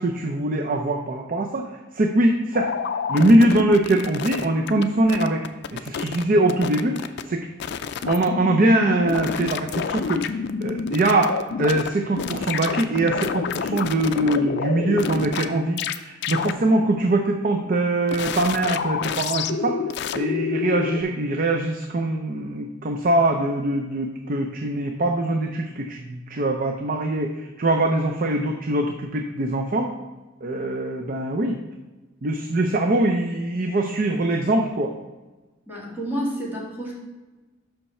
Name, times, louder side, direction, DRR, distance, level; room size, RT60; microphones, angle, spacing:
voice 1, 0.0-1.7 2.0-2.7 3.1-5.4 5.7-7.5 8.1-19.8 20.1-29.9 30.4-31.6 32.2-34.9, right 1 dB, 45° right, 3 dB, 0.5 m, -22 dB
sound 1, 2.5-4.8 5.1-6.2 6.5-7.2 7.6-11.9 12.2-15.5 15.8-16.0 16.2-16.5 18.1-21.0, left 6 dB, 60° left, 0.4 m, -28 dB
voice 2, 35.7-37.0, equal, 10° right, -5 dB, 2.0 m, -30 dB
5.9 x 5.5 x 4.2 m, 1.2 s
head